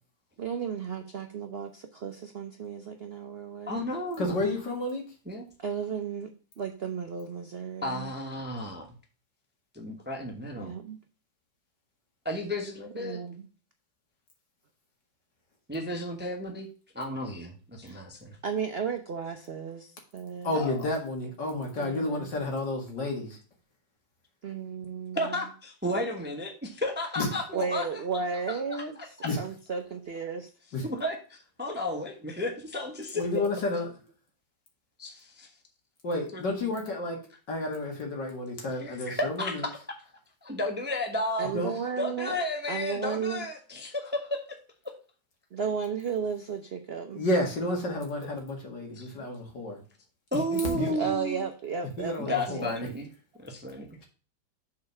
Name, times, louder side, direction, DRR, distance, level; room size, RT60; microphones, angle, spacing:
voice 1, 0.4-3.8 5.6-8.1 10.6-11.0 13.0-13.5 17.8-18.0 18.4-20.6 21.8-22.3 24.4-25.5 27.5-30.5 41.4-42.4 42.7-43.5 45.5-47.2 50.5-52.7, right 6 dB, 75° right, 5 dB, 0.5 m, -34 dB
voice 2, 3.7-4.3 5.3-5.4 7.8-8.9 9.8-10.7 12.3-13.2 15.7-16.7 16.9-18.4 20.5-20.7 25.1-27.8 30.8-33.2 35.0-35.5 36.3-36.5 38.8-39.7 40.4-41.5 42.0-44.4 48.2-48.3 49.2-49.3 50.3-51.4 52.2-53.1 53.4-54.0, left 1 dB, 10° right, 3 dB, 0.8 m, -33 dB
voice 3, 4.2-5.0 20.4-23.4 27.2-27.3 29.2-29.4 30.7-30.8 33.1-33.9 36.0-37.2 37.5-39.7 41.5-41.7 47.1-49.8 50.5-50.9 52.0-52.7, left 2 dB, 65° left, 1 dB, 2.6 m, -31 dB
6.6 x 4.3 x 5.8 m, 0.37 s
omnidirectional pair, 2.1 m